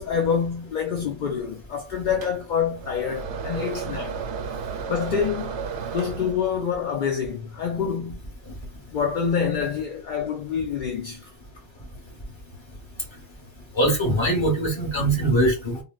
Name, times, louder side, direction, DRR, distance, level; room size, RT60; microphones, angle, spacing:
voice 1, 0.0-4.2 4.9-5.5 5.9-8.2 8.9-11.3, left 7 dB, 55° left, 0.5 m, -26 dB
sound 1, 2.2-6.7, right 6 dB, 75° right, 0.8 m, -33 dB
voice 2, 13.7-15.8, right 1 dB, 25° left, 1.1 m, -22 dB
3.8 x 2.1 x 2.3 m
omnidirectional pair, 1.2 m